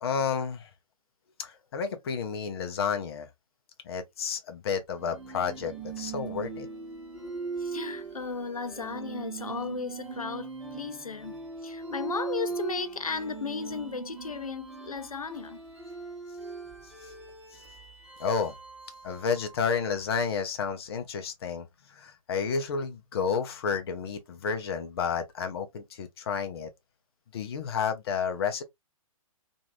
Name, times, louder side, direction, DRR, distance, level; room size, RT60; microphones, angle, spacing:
voice 1, 0.0-0.7 1.4-3.3 3.8-6.7 18.2-18.6 19.0-26.7 27.3-28.6, left 6 dB, 45° left, 0.8 m, -31 dB
sound 1, 5.0-20.1, right 4 dB, 5° right, 1.2 m, -40 dB
voice 2, 7.6-15.6, left 5 dB, 85° left, 0.5 m, -35 dB
2.9 x 2.6 x 2.6 m
figure-of-eight pair, 130°, 18 cm